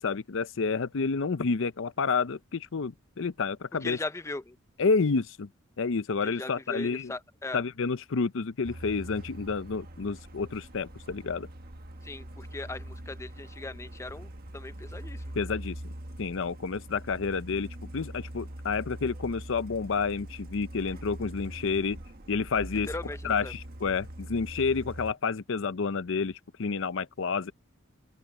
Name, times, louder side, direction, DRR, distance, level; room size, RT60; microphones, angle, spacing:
voice 1, 0.0-4.0 4.8-5.5 5.8-7.1 7.5-11.5 15.3-15.8 16.2-17.7 17.9-22.0 22.3-22.9 23.2-27.5, left 4 dB, 65° left, 0.6 m, -29 dB
voice 2, 3.8-4.6 6.2-7.6 12.0-15.4 22.8-23.5, left 2 dB, 15° left, 0.5 m, -39 dB
Truck, 8.6-25.1, right 1 dB, 45° right, 1.5 m, -43 dB
open air
head